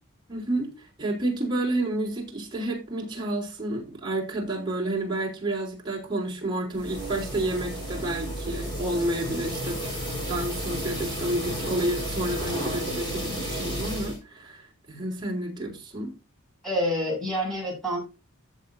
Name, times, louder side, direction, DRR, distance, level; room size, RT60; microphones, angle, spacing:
voice 1, 0.3-9.8 10.3-16.1, right 1 dB, 20° right, -3 dB, 3.6 m, -30 dB
sound 1, 6.7-14.2, right 1 dB, 20° left, 4.7 m, -32 dB
voice 2, 16.6-18.0, equal, ahead, -3 dB, 6.5 m, -27 dB
14.0 x 6.7 x 2.7 m, 0.29 s
head